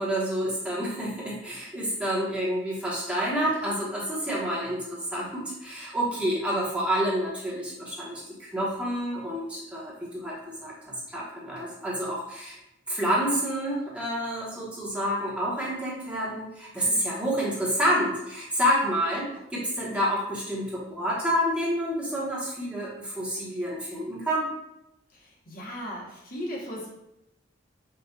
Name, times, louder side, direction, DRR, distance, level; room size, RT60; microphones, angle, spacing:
voice 1, 0.0-10.7 11.1-12.6 12.9-24.5, equal, 5° right, -6 dB, 1.0 m, -28 dB
voice 2, 25.1-26.9, equal, 50° left, -3 dB, 0.9 m, -37 dB
5.7 x 2.4 x 2.6 m, 0.87 s
head